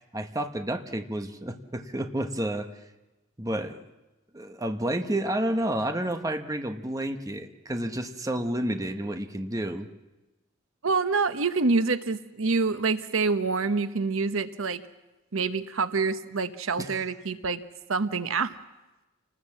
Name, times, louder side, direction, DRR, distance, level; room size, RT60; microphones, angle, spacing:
voice 1, 0.1-2.7 3.4-3.8 4.3-9.9 16.8-16.9, right 1 dB, 15° right, 6 dB, 1.2 m, -30 dB
voice 2, 10.8-14.8 15.3-17.6 17.9-18.6, right 4 dB, 85° right, 11 dB, 1.0 m, -26 dB
28.5 x 20.0 x 7.5 m, 1.1 s
head